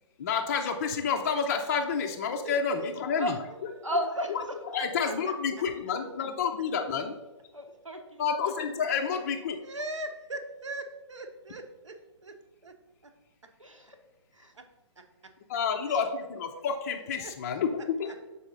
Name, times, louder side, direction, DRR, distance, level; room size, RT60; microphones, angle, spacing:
voice 1, 0.2-3.4 4.7-7.1 8.2-9.6 15.5-16.5 17.1-17.7 18.0-18.1, left 6 dB, 30° left, 3 dB, 0.4 m, -29 dB
voice 2, 2.4-2.9 3.2-3.6 4.8-5.1 9.1-9.2 9.6-12.0 12.2-12.3 12.6-12.7 13.0-13.1 14.5-14.6 17.2-17.3 18.1-18.2, right 2 dB, 70° right, 6 dB, 0.9 m, -40 dB
voice 3, 3.8-4.6 5.1-5.2 7.5-8.5 13.6-14.0 14.3-14.5 15.9-16.0, equal, 90° right, 4 dB, 1.1 m, -34 dB
6.9 x 4.1 x 3.9 m, 1.1 s
figure-of-eight pair, 130°, 16 cm